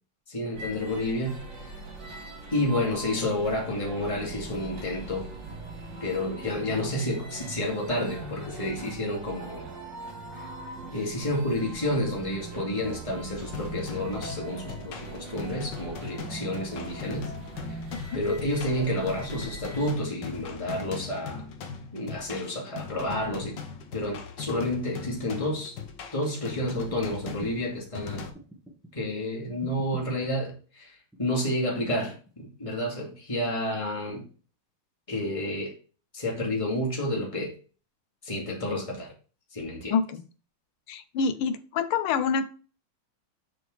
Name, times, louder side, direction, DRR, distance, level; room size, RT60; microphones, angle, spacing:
voice 1, 0.3-1.4 2.5-5.3 6.0-9.7 10.9-17.3 18.1-21.4 21.9-23.6 23.9-25.8 26.1-28.3 28.9-30.9 31.2-34.2 35.1-35.7 36.1-37.5 38.2-39.1 39.5-40.0, left 1 dB, 15° left, 2.2 m, -30 dB
sound 1, 0.5-19.9, right 2 dB, 60° right, 2.3 m, -41 dB
sound 2, 13.5-28.3, left 5 dB, 60° left, 1.6 m, -40 dB
sound 3, 27.4-27.7 28.3-28.9 29.6-30.2 31.1-31.7 32.1-32.7 33.7-34.4 35.3-35.4, right 1 dB, ahead, 1.0 m, -46 dB
voice 2, 39.9-40.2 40.9-42.5, left 6 dB, 85° left, 1.6 m, -27 dB
6.8 x 6.6 x 3.2 m
omnidirectional pair, 2.3 m